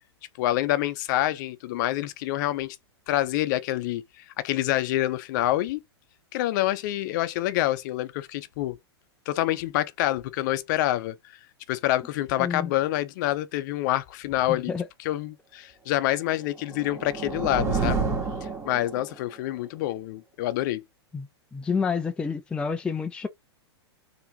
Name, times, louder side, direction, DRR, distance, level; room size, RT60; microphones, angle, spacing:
voice 1, 0.4-2.8 3.1-5.8 6.3-8.8 9.3-11.2 11.7-14.7 15.0-18.1 18.6-20.8, left 15 dB, 45° left, 0.7 m, -27 dB
voice 2, 12.4-12.7 14.5-14.9 21.1-23.3, left 5 dB, 5° left, 0.4 m, -29 dB
sound 1, 16.4-19.3, right 4 dB, 20° right, 1.9 m, -29 dB
4.5 x 2.9 x 3.6 m
figure-of-eight pair, 105°, 14 cm